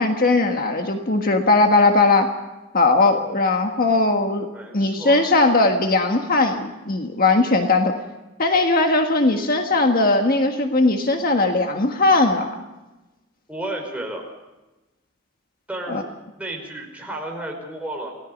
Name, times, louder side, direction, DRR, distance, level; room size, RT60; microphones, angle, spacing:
voice 1, 0.0-2.3 2.7-4.5 4.7-7.9 8.4-12.6 15.9-16.0, left 2 dB, 50° left, 4 dB, 1.5 m, -19 dB
voice 2, 4.5-5.2 13.5-14.2 15.7-16.0 16.4-18.1, right 1 dB, 5° right, 0 dB, 5.2 m, -32 dB
28.0 x 18.0 x 5.3 m, 1.1 s
head